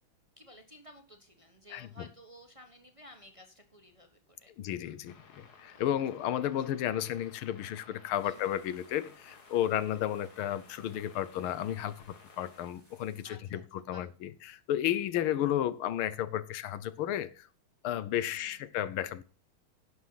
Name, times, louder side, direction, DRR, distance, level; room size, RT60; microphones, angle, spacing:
voice 1, 0.4-4.5 5.7-6.0 6.4-6.5 8.2-8.6 13.2-14.1 18.2-18.6, equal, 20° right, 1.0 m, -55 dB
voice 2, 4.6-12.0 12.4-13.6 13.9-17.5 17.8-19.2, left 11 dB, 85° left, 1.7 m, -33 dB
sound 1, 5.1-12.7, left 5 dB, 50° left, 2.0 m, -57 dB
sound 2, 8.1-13.3, equal, 5° left, 6.2 m, -65 dB
11.0 x 7.3 x 5.7 m
omnidirectional pair, 2.3 m